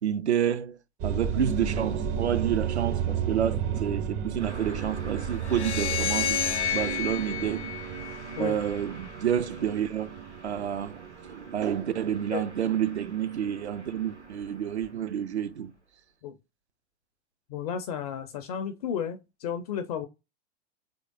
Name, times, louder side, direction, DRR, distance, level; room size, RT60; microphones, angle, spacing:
voice 1, 0.0-0.8 1.0-6.4 6.7-7.8 8.4-15.7, right 9 dB, 75° right, 0.6 m, -29 dB
sound 1, 1.0-15.0, right 8 dB, 25° right, 0.4 m, -34 dB
Car passing by, 4.4-15.8, right 2 dB, 90° right, 1.2 m, -48 dB
sound 2, 5.4-8.7, left 10 dB, 80° left, 0.7 m, -30 dB
voice 2, 17.5-20.1, left 8 dB, 35° left, 0.4 m, -33 dB
3.6 x 3.3 x 3.8 m
figure-of-eight pair, 95°, 34 cm